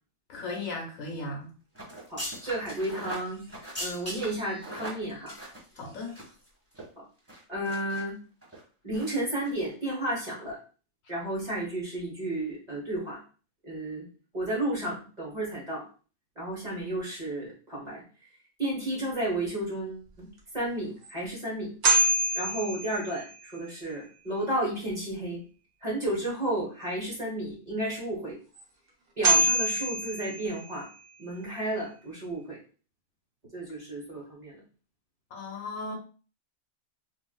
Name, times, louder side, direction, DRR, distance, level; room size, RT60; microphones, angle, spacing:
voice 1, 0.3-1.5 5.7-6.2 35.3-35.9, left 2 dB, 70° left, 0 dB, 1.2 m, -36 dB
sound 1, 1.7-6.4 6.7-6.8 7.3-8.0 8.4-8.6 8.9-9.1 9.4-9.5, equal, 10° right, 1.1 m, -40 dB
voice 2, 2.1-5.4 7.0-7.1 7.5-8.2 8.8-10.6 11.1-13.2 13.6-14.1 14.3-15.9 16.4-18.0 18.6-20.3 20.5-21.7 22.3-25.4 25.8-28.4 29.2-30.9 31.2-32.6 33.5-34.6, right 1 dB, 30° right, -5 dB, 1.1 m, -32 dB
sound 2, 20.4-20.5 21.0-21.1 21.8-23.5 28.5-28.6 29.2-30.9, right 1 dB, 80° right, 1.4 m, -26 dB
3.7 x 2.6 x 2.2 m, 0.38 s
omnidirectional pair, 1.5 m